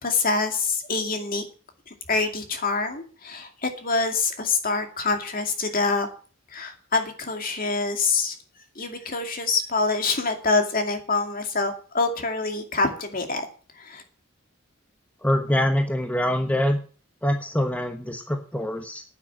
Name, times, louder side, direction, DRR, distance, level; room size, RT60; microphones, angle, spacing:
voice 1, 0.0-1.4 1.9-6.1 6.5-8.4 8.8-13.5 13.8-14.0, left 3 dB, 45° left, 5 dB, 2.4 m, -25 dB
voice 2, 15.2-16.8 17.2-19.0, left 1 dB, 5° left, 4 dB, 1.1 m, -24 dB
9.4 x 9.3 x 7.5 m, 0.40 s
head